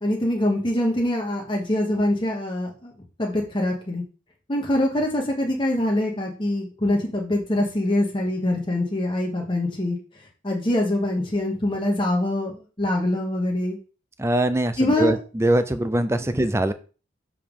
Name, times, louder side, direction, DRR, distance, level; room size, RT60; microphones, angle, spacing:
voice 1, 0.0-2.9 3.2-4.0 4.5-10.0 10.4-13.8 14.8-15.2, left 1 dB, 25° left, 0 dB, 1.2 m, -24 dB
voice 2, 14.2-16.7, right 1 dB, 15° right, 11 dB, 0.5 m, -22 dB
6.6 x 5.0 x 3.7 m, 0.36 s
head